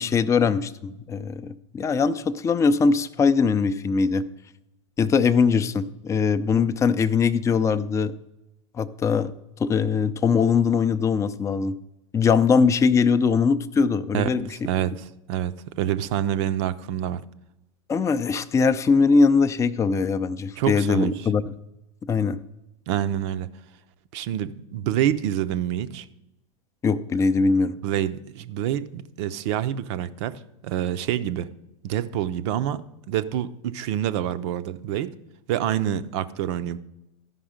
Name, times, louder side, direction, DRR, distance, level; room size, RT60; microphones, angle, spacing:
voice 1, 0.0-4.2 5.0-8.1 8.8-9.3 9.6-11.7 12.1-14.4 17.9-21.4 22.1-22.4 26.8-27.7, left 5 dB, 20° left, 11 dB, 0.5 m, -21 dB
voice 2, 14.1-17.2 20.6-21.3 22.9-23.5 24.1-26.1 27.8-30.3 30.6-31.5 31.8-32.8 33.1-35.1 35.5-36.8, right 11 dB, 60° right, 13 dB, 0.6 m, -27 dB
13.0 x 5.4 x 5.0 m, 0.93 s
hypercardioid pair, 100°, 16 cm